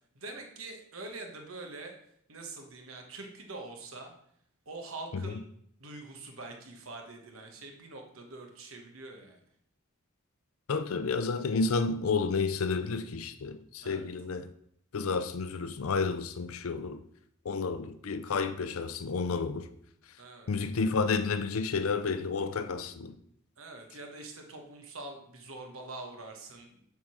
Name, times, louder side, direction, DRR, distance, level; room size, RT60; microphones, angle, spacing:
voice 1, 0.1-2.0 2.3-4.1 4.6-5.4 5.8-9.4 13.8-14.1 20.2-20.5 23.6-26.7, right 2 dB, 75° right, 1.4 m, -44 dB
voice 2, 10.7-14.5 14.9-17.0 17.4-19.7 20.5-23.1, left 4 dB, 85° left, 0.5 m, -31 dB
7.1 x 3.8 x 6.3 m
head